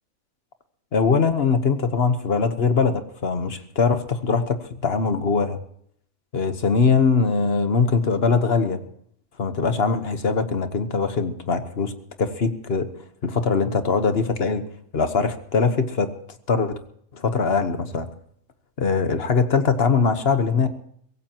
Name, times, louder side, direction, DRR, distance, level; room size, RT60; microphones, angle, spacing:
voice 1, 0.9-5.6 6.3-8.8 9.4-11.9 12.2-12.9 13.2-14.6 14.9-16.1 16.5-16.8 17.1-18.1 18.8-20.7, left 5 dB, 50° left, 9 dB, 1.4 m, -21 dB
23.5 x 17.0 x 3.0 m, 0.67 s
omnidirectional pair, 1.4 m